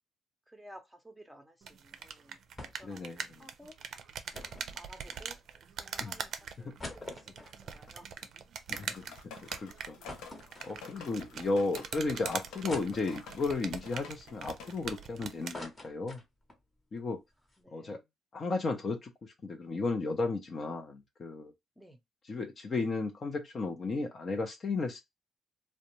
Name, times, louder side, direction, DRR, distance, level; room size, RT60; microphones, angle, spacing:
voice 1, 0.5-2.4 2.8-3.8 4.8-5.4 5.8-8.2 17.6-18.0 21.8-22.0, equal, ahead, 0.7 m, -55 dB
sound 1, 1.6-15.6, right 7 dB, 65° right, 0.4 m, -43 dB
sound 2, 2.6-3.0 3.3-3.4 4.3-5.6 6.1-6.2 6.5-9.0 9.4-9.5 10.1-11.2 11.7-11.8 12.7-13.5 14.1-15.1 15.3-16.7 17.0-17.1 17.3-17.6, left 2 dB, 25° left, 0.9 m, -47 dB
voice 2, 2.8-3.2 6.0-6.2 6.6-6.8 8.7-9.0 9.6-10.0 10.6-16.2 16.9-17.2 17.7-18.0 18.3-21.5 22.3-25.0, left 3 dB, 45° left, 0.6 m, -34 dB
sound 3, 8.7-14.8, left 6 dB, 90° left, 0.5 m, -50 dB
2.4 x 2.1 x 2.9 m
cardioid pair, 90°, 0 cm